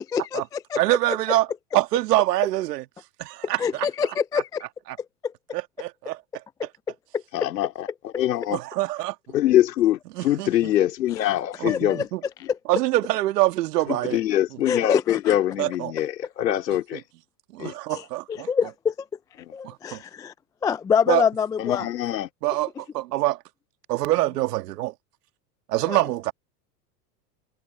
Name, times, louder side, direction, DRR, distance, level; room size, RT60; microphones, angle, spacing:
voice 1, 0.0-0.8 3.6-4.6 5.0-5.3 7.1-7.2 11.7-12.0 12.5-12.6 14.7-15.4 17.9-19.1 19.5-20.3 20.6-21.9 25.9-26.1, left 6 dB, 10° left, 0.3 m, -26 dB
voice 2, 0.8-1.5 1.7-2.8 3.2-3.9 5.5-6.2 8.5-9.2 10.2-10.5 11.6-12.2 12.7-14.2 15.6-15.9 17.5-18.5 19.6-20.0 21.1-21.2 22.4-23.4 23.9-24.9 25.7-26.3, right 16 dB, 70° right, 2.3 m, -24 dB
voice 3, 7.3-8.6 9.3-12.1 12.4-12.5 13.9-17.0 17.6-17.7 19.4-19.5 21.6-22.3, left 12 dB, 80° left, 3.6 m, -24 dB
hypercardioid pair, 100°, 49 cm